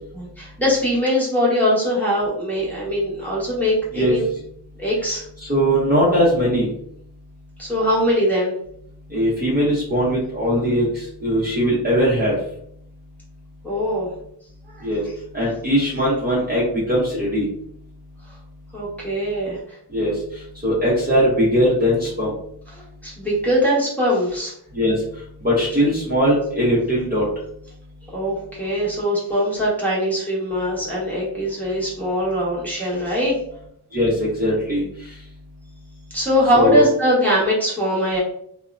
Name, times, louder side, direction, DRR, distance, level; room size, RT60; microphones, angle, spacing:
voice 1, 0.1-4.2 4.8-5.2 7.6-8.5 13.6-14.1 14.7-14.9 18.7-19.6 22.7-24.5 28.1-33.4 36.1-38.2, equal, 5° left, -7 dB, 1.0 m, -21 dB
voice 2, 5.4-6.7 9.1-12.3 14.8-15.0 15.3-17.5 19.9-20.1 20.6-22.3 24.7-24.9 25.4-27.3 33.9-34.8 36.5-36.8, equal, 25° right, -7 dB, 0.7 m, -20 dB
2.6 x 2.1 x 2.4 m, 0.68 s
wide cardioid pair, 110°, 40 cm